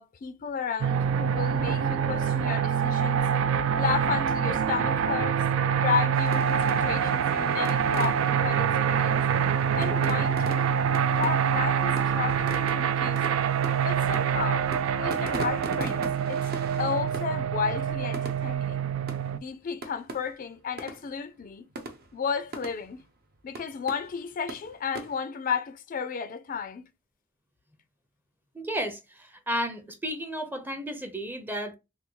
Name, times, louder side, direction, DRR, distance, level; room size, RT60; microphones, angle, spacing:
voice 1, 0.0-3.3 3.8-5.4 5.7-9.2 9.8-10.7 11.2-13.4 13.8-14.7 15.0-16.5 16.8-18.9 19.3-21.6 22.1-23.0 23.4-26.8, left 6 dB, 45° left, 0.4 m, -33 dB
sound 1, 0.8-19.4, right 7 dB, 75° right, 0.3 m, -25 dB
sound 2, 6.1-25.2, right 2 dB, 50° right, 0.7 m, -42 dB
voice 2, 28.5-31.8, equal, 10° right, 0.5 m, -33 dB
3.4 x 2.3 x 3.0 m
head